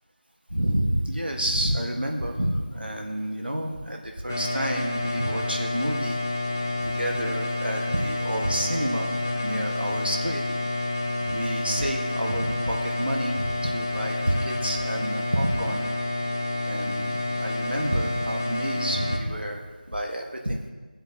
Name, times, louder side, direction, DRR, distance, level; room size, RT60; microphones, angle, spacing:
voice 1, 0.5-6.2 6.8-10.4 11.3-15.8 16.6-19.6 19.9-20.6, right 1 dB, 85° right, 1 dB, 1.5 m, -29 dB
sound 1, 4.3-19.2, left 2 dB, 20° left, 0.6 m, -29 dB
18.0 x 7.7 x 2.9 m, 1.4 s
figure-of-eight pair, 170°, 5 cm